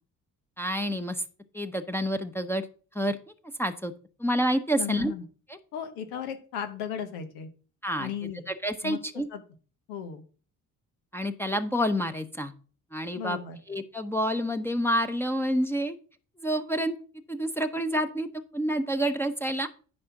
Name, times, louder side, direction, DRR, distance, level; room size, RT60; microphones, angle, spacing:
voice 1, 0.6-1.2 1.5-2.6 2.9-3.2 3.6-3.9 4.2-5.1 7.8-8.1 8.5-9.3 11.1-12.5 12.9-13.4 13.7-16.0 16.4-16.9 17.3-19.7, equal, 5° left, 5 dB, 0.9 m, -28 dB
voice 2, 4.7-5.2 5.7-7.5 8.0-8.4 8.8-9.0 9.3-9.4 9.9-10.2 13.2-13.6, left 8 dB, 80° left, 7 dB, 1.2 m, -35 dB
9.8 x 4.2 x 5.9 m, 0.39 s
hypercardioid pair, 55°, 39 cm